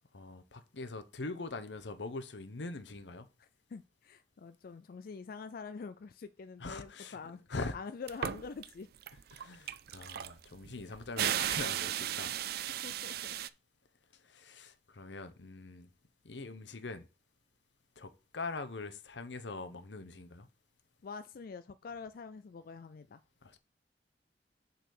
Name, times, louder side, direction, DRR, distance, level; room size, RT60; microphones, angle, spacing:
voice 1, 0.1-3.3 6.6-7.8 9.3-12.4 14.1-15.9 16.2-17.1 18.0-20.5 23.4-23.6, left 3 dB, 85° left, 0.9 m, -43 dB
voice 2, 3.7-7.4 7.7-8.9 12.8-13.4 21.0-23.2, left 5 dB, 55° left, 0.4 m, -45 dB
sound 1, 8.1-8.7 9.0-13.5, right 11 dB, 60° right, 0.4 m, -35 dB
6.6 x 4.1 x 6.5 m
head